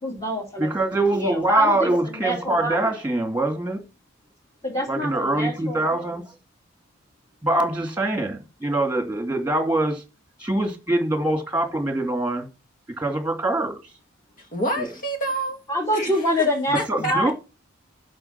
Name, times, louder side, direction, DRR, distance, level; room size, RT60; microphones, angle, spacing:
voice 1, 0.0-2.9 4.6-6.0 15.7-17.3, equal, 20° left, 3.0 m, -26 dB
voice 2, 0.6-3.8 4.9-6.3 7.4-10.0 10.4-12.5 13.0-13.8 14.8-14.9 16.9-17.3, right 1 dB, 5° right, 2.5 m, -24 dB
voice 3, 14.4-15.6 15.9-16.1 16.7-17.3, right 1 dB, 40° left, 2.3 m, -28 dB
8.9 x 6.5 x 5.9 m
head